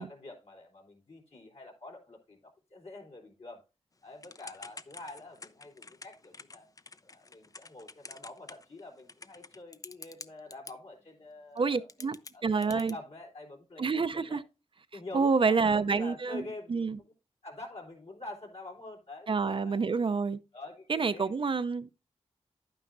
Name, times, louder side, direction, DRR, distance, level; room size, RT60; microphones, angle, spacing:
voice 1, 0.0-3.6 4.0-6.7 7.0-13.9 14.1-14.4 14.9-17.1 17.4-19.8 20.5-21.3, left 2 dB, 65° left, 3.5 m, -46 dB
Typing / Telephone, 4.2-10.7 11.6-11.7 11.9-12.9, left 3 dB, 30° left, 0.5 m, -48 dB
voice 2, 11.6-12.9 13.8-14.4 15.1-16.4 16.7-17.0 19.3-20.4 20.9-21.9, right 4 dB, 50° right, 0.5 m, -28 dB
10.5 x 9.2 x 2.6 m
cardioid pair, 65°, 11 cm